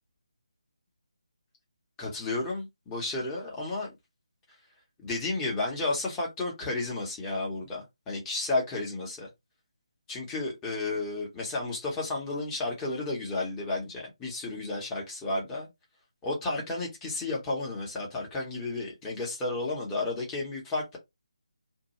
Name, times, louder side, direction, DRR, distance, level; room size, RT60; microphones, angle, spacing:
voice 1, 2.0-3.9 5.0-9.3 10.1-15.7 16.2-21.0, left 2 dB, 10° left, 0.9 m, -32 dB
2.6 x 2.2 x 2.9 m
figure-of-eight pair, 150°, 3 cm